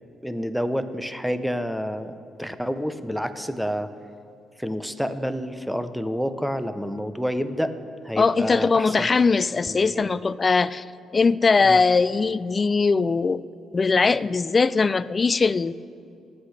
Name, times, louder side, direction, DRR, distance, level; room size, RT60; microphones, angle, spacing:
voice 1, 0.2-3.9 4.6-7.7 8.0-9.2 9.7-10.1 11.6-11.8, equal, ahead, 10 dB, 0.7 m, -29 dB
voice 2, 8.2-10.8 11.1-13.4 13.7-15.7, left 4 dB, 30° left, 16 dB, 0.3 m, -20 dB
24.5 x 8.3 x 3.3 m, 2.5 s
cardioid pair, 100°, 0 cm